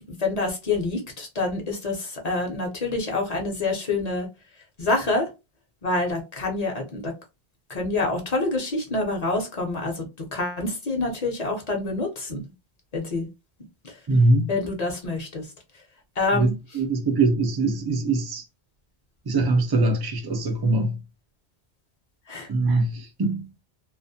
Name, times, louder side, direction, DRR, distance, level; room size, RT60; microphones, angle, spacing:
voice 1, 0.2-4.3 4.8-5.3 5.8-7.1 7.7-12.4 12.9-13.3 14.5-15.4 16.2-16.5 22.3-22.5, left 3 dB, 45° left, 0.7 m, -27 dB
voice 2, 14.1-14.5 16.3-18.4 19.3-21.0 22.5-23.4, right 2 dB, 35° right, 0.4 m, -22 dB
2.3 x 2.1 x 2.6 m
omnidirectional pair, 1.1 m